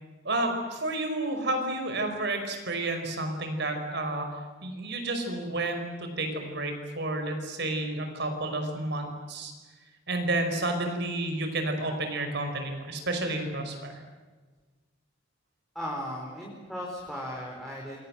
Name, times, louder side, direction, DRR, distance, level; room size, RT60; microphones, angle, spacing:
voice 1, 0.2-4.3 4.6-9.5 10.1-13.9, right 2 dB, 60° right, 5 dB, 5.6 m, -31 dB
voice 2, 15.7-18.0, equal, ahead, -3 dB, 4.9 m, -36 dB
28.5 x 23.5 x 7.9 m, 1.3 s
head